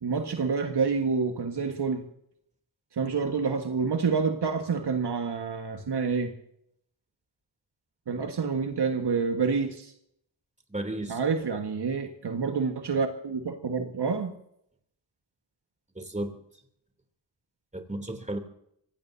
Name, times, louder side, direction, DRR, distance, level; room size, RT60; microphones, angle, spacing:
voice 1, 0.0-2.1 2.9-6.3 8.1-9.9 11.1-14.4, right 5 dB, 75° right, 1.6 m, -28 dB
voice 2, 10.7-11.2 16.0-16.4 17.7-18.4, right 1 dB, 15° right, 3.1 m, -33 dB
24.0 x 17.5 x 2.8 m
cardioid pair, 50°, 41 cm